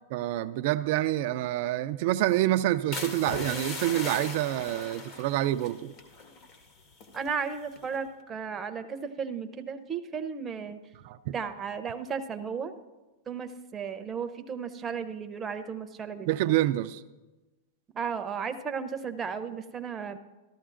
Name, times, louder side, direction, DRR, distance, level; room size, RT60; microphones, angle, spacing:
voice 1, 0.1-5.9 11.0-11.3 16.3-17.0, right 14 dB, 55° right, 0.3 m, -27 dB
sound 1, 2.9-7.3 7.8-8.1, left 4 dB, 45° left, 1.4 m, -39 dB
voice 2, 7.1-10.8 11.3-12.8 13.3-16.4 17.9-20.2, right 6 dB, 20° right, 0.6 m, -34 dB
14.0 x 13.0 x 2.5 m
supercardioid pair, 140°, 0 cm